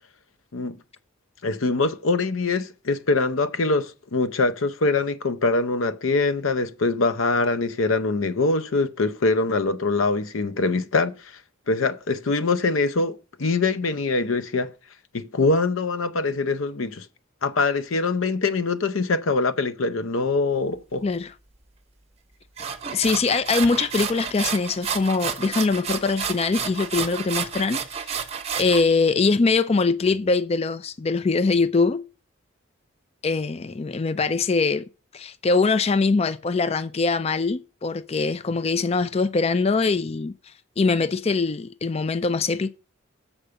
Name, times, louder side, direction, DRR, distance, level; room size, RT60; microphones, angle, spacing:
voice 1, 1.4-11.2 11.7-14.7 15.1-17.0 17.4-21.1, left 3 dB, 90° left, 0.7 m, -23 dB
voice 2, 21.0-21.3 22.9-28.1 28.5-32.0 33.2-34.9 35.1-40.3 40.8-42.7, left 4 dB, 30° left, 0.4 m, -22 dB
sound 1, 22.6-28.8, right 7 dB, 30° right, 0.9 m, -30 dB
7.2 x 5.0 x 6.8 m
head